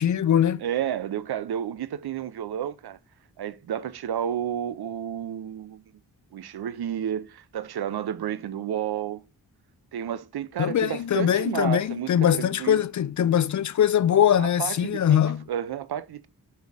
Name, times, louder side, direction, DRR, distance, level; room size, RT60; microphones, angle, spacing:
voice 1, 0.0-0.6 10.6-15.4, left 9 dB, 50° left, 0.5 m, -22 dB
voice 2, 0.6-3.0 3.4-5.8 6.3-9.2 9.9-12.8 14.4-16.3, right 10 dB, 75° right, 0.7 m, -31 dB
4.7 x 4.3 x 5.4 m
cardioid pair, 75°, 38 cm